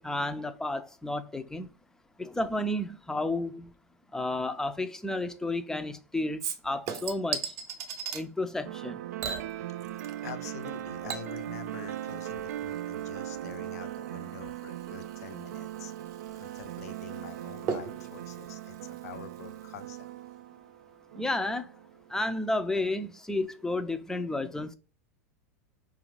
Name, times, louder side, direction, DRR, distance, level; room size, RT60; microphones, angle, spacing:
voice 1, 0.0-1.7 2.2-3.7 4.1-7.4 8.1-9.0 21.2-21.7 22.1-24.7, left 2 dB, 5° left, 0.4 m, -32 dB
Chink clink / Liquid, 6.4-8.2 9.2-10.3 10.6-19.6 20.0-20.1, right 7 dB, 40° right, 0.7 m, -40 dB
sound 1, 8.6-22.2, right 13 dB, 75° right, 0.3 m, -39 dB
voice 2, 10.2-15.9 16.3-20.1, left 9 dB, 75° left, 0.6 m, -46 dB
4.9 x 2.4 x 3.1 m
hypercardioid pair, 110°, 8 cm